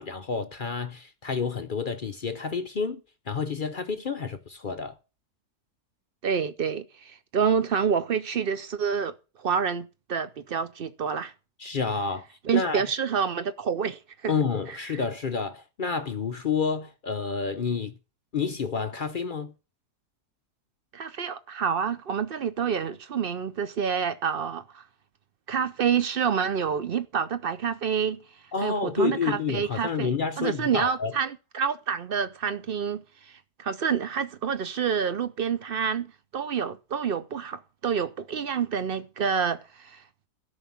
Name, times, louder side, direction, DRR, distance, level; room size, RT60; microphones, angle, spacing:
voice 1, 0.0-4.9 11.6-12.2 12.5-12.8 14.3-18.0 18.3-19.5 28.5-31.1, left 5 dB, 55° left, 0.5 m, -29 dB
voice 2, 6.2-9.1 9.4-11.3 12.4-14.3 14.9-15.0 20.9-24.8 25.5-28.2 28.6-33.0 33.6-40.0, right 7 dB, 55° right, 0.6 m, -28 dB
13.0 x 5.5 x 7.1 m
omnidirectional pair, 1.7 m